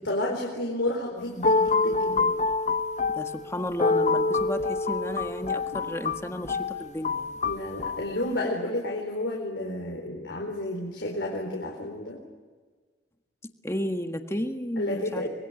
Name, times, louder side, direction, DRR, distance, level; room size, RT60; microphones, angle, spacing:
voice 1, 0.0-2.3 5.7-5.8 7.4-12.2 14.8-15.3, left 1 dB, 85° left, -1 dB, 4.3 m, -31 dB
sound 1, 1.2-8.1, left 3 dB, 45° left, 0.8 m, -27 dB
voice 2, 3.1-7.4 13.6-15.3, left 1 dB, 15° left, 6 dB, 1.6 m, -33 dB
25.5 x 22.0 x 8.5 m, 1.4 s
head